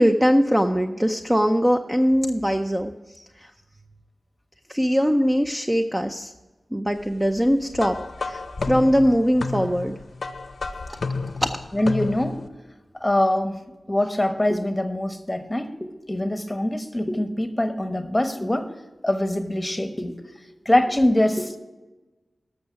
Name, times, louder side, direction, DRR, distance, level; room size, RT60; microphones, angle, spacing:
voice 1, 0.0-3.5 4.7-6.3 6.7-10.0 10.9-11.0 11.4-11.6, equal, 10° right, 5 dB, 0.5 m, -21 dB
sound 1, 7.7-12.5, left 4 dB, 70° left, 0.6 m, -31 dB
voice 2, 11.7-12.4 12.9-13.6 13.9-18.7 19.0-20.3 20.6-21.6, left 1 dB, 15° left, 7 dB, 1.1 m, -23 dB
12.5 x 6.4 x 5.8 m, 1.1 s
wide cardioid pair, 80°, 0 cm